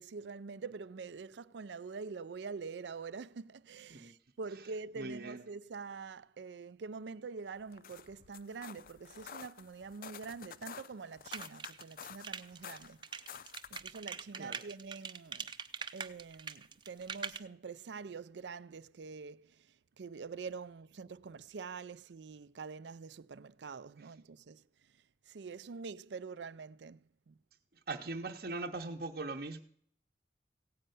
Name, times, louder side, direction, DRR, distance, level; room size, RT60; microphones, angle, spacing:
voice 1, 0.0-13.0 13.7-15.5 15.9-24.6 25.3-27.4, right 4 dB, 80° right, 0.5 m, -45 dB
voice 2, 5.0-5.4 14.4-14.6 27.9-29.6, right 3 dB, 55° right, 0.8 m, -40 dB
sound 1, 7.6-14.0, left 7 dB, 50° left, 0.5 m, -51 dB
sound 2, 11.3-17.4, right 6 dB, 25° right, 0.6 m, -42 dB
16.5 x 5.5 x 9.2 m
head